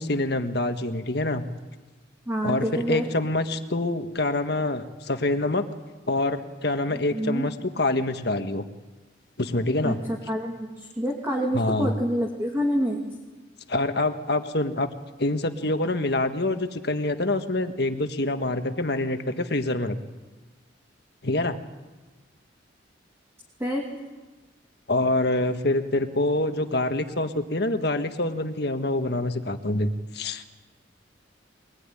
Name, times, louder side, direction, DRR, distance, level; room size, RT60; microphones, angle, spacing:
voice 1, 0.0-1.4 2.4-5.7 6.1-8.6 9.4-10.0 11.5-11.9 13.7-14.9 15.2-20.0 21.2-21.6 24.9-30.4, left 2 dB, 60° left, 7 dB, 1.6 m, -26 dB
voice 2, 2.3-3.0 6.9-7.5 9.8-13.0 23.6-23.9, equal, 15° right, -1 dB, 2.6 m, -27 dB
24.0 x 19.5 x 10.0 m, 1.2 s
head